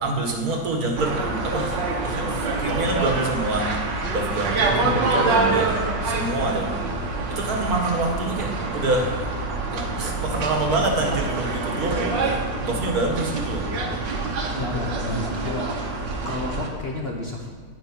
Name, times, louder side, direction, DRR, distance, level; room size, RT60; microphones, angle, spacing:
voice 1, 0.0-3.7 4.1-5.8 6.0-6.7 7.3-9.3 9.7-13.7, right 2 dB, 55° right, 2 dB, 1.7 m, -26 dB
sound 1, 1.0-16.7, right 3 dB, 80° right, 1.9 m, -26 dB
voice 2, 14.6-15.9 16.2-17.5, left 2 dB, 40° left, 0 dB, 1.0 m, -30 dB
9.5 x 9.2 x 5.9 m, 1.5 s
omnidirectional pair, 2.0 m